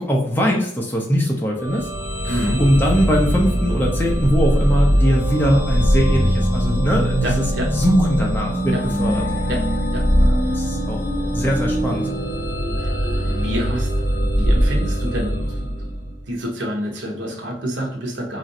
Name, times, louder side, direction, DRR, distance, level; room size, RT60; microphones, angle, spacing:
voice 1, 0.0-1.9 2.2-7.4 7.7-9.2 10.2-11.0 11.3-12.1, equal, 10° left, -2 dB, 0.5 m, -21 dB
sound 1, 1.6-16.3, equal, 50° left, 0.7 m, -22 dB
voice 2, 2.3-2.6 7.2-7.7 8.7-8.8 9.5-10.1 12.8-13.9 14.2-18.4, equal, 75° right, 0 dB, 0.8 m, -28 dB
sound 2, 4.3-14.1, equal, 15° right, 1.1 m, -25 dB
3.0 x 2.5 x 2.6 m, 0.68 s
head